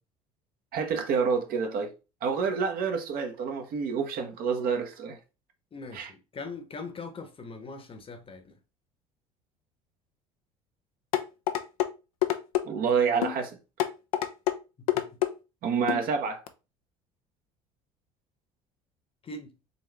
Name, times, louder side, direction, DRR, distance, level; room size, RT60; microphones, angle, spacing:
voice 1, 0.7-1.9 2.2-5.2 5.9-6.1 12.6-13.6 15.6-16.4, right 6 dB, 55° right, 1.1 m, -28 dB
voice 2, 5.7-8.6 14.8-15.2 19.2-19.5, left 3 dB, 30° left, 1.0 m, -41 dB
sound 1, 11.1-11.9 12.2-12.7 13.2-13.4 13.8-14.6 14.9-15.3 15.9-16.1 16.5-16.6, left 13 dB, 75° left, 0.6 m, -26 dB
4.0 x 3.5 x 3.4 m
hypercardioid pair, 65°, 18 cm